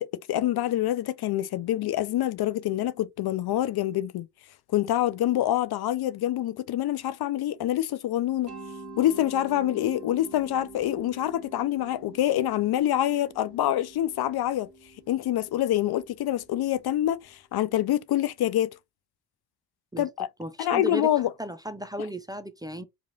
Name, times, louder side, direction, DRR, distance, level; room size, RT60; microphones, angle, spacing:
voice 1, 0.0-4.3 4.7-8.5 9.0-14.7 15.1-18.7 20.0-20.3 20.6-21.3, left 13 dB, 60° left, 0.5 m, -26 dB
Mallet percussion, 8.5-17.2, right 3 dB, 40° right, 1.4 m, -46 dB
voice 2, 20.4-21.1 21.4-22.8, equal, 10° right, 0.5 m, -34 dB
3.0 x 2.5 x 3.9 m
supercardioid pair, 45°, 45 cm